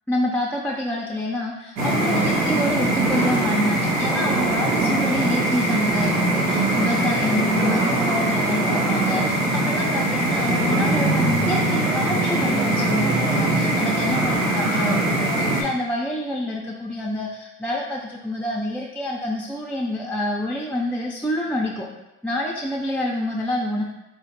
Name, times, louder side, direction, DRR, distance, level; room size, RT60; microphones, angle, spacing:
voice 1, 0.1-21.9 22.2-23.8, left 1 dB, 5° left, -3 dB, 0.4 m, -27 dB
sound 1, 1.8-15.6, right 1 dB, 85° right, 0.7 m, -21 dB
3.7 x 2.1 x 2.8 m, 0.97 s
hypercardioid pair, 50°, 32 cm